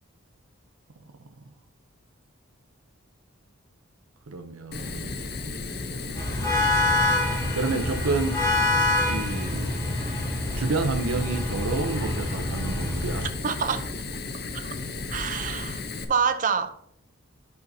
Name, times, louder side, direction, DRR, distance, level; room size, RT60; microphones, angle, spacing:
voice 1, 4.3-5.1 7.5-8.4 9.1-9.8 10.5-13.3, right 3 dB, 85° right, 0.6 m, -29 dB
Fire, 4.7-16.0, left 3 dB, 45° left, 0.6 m, -34 dB
sound 1, 6.2-13.3, left 2 dB, 15° left, 1.4 m, -26 dB
voice 2, 13.4-13.9 14.5-14.7 15.1-15.8 16.1-16.7, right 6 dB, 40° right, 0.5 m, -26 dB
10.5 x 5.5 x 2.7 m
head